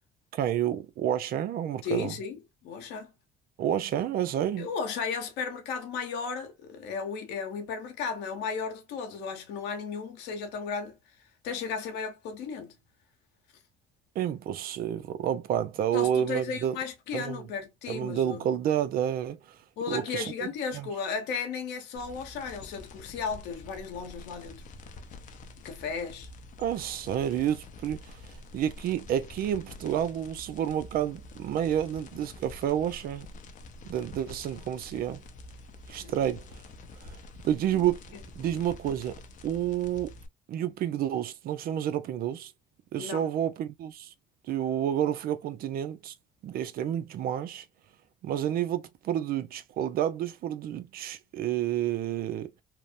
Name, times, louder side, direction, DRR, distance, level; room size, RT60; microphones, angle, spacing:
voice 1, 0.3-2.2 3.6-4.7 14.2-16.8 17.1-17.4 17.9-19.6 19.9-20.3 20.7-20.9 26.6-33.3 33.8-35.2 35.9-36.6 37.0-37.2 37.4-40.1 40.5-42.5 42.9-44.1 44.5-46.1 46.4-47.7 48.2-52.5, right 10 dB, 60° right, 0.5 m, -30 dB
voice 2, 1.8-2.4 2.6-3.1 4.6-11.0 11.4-12.8 15.9-18.5 19.8-24.6 25.6-26.3 36.0-36.1 38.5-38.7 43.0-43.3, left 5 dB, 85° left, 0.9 m, -35 dB
sound 1, 21.9-40.3, left 2 dB, 50° left, 0.5 m, -47 dB
2.9 x 2.0 x 2.4 m
cardioid pair, 110°, 17 cm